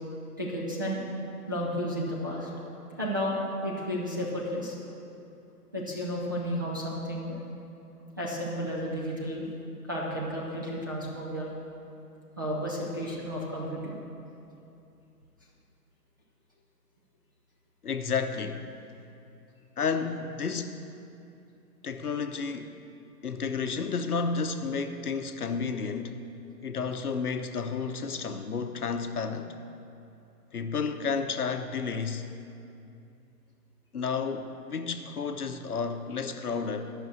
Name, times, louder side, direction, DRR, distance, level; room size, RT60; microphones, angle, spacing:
voice 1, 0.4-1.0 1.5-2.5 2.9-4.8 5.7-7.4 8.2-9.5 9.9-11.5 12.4-14.0, equal, 15° right, -5 dB, 0.5 m, -32 dB
voice 2, 17.8-18.7 19.8-20.9 21.8-22.7 23.2-26.2 26.6-29.6 30.5-32.3 33.9-36.9, left 5 dB, 65° left, 7 dB, 0.9 m, -31 dB
11.0 x 6.2 x 8.0 m, 2.7 s
figure-of-eight pair, 135°, 48 cm